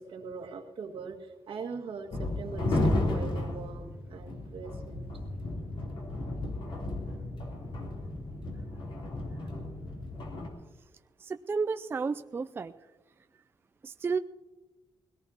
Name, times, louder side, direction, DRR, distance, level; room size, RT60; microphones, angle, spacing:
voice 1, 0.0-5.1, right 5 dB, 80° right, 2 dB, 1.9 m, -41 dB
sound 1, 2.1-10.5, left 2 dB, 65° left, 3.5 m, -33 dB
voice 2, 11.2-12.7 13.8-14.2, right 5 dB, 25° right, 10 dB, 0.4 m, -32 dB
21.5 x 17.5 x 2.8 m, 1.2 s
wide cardioid pair, 160°, 9 cm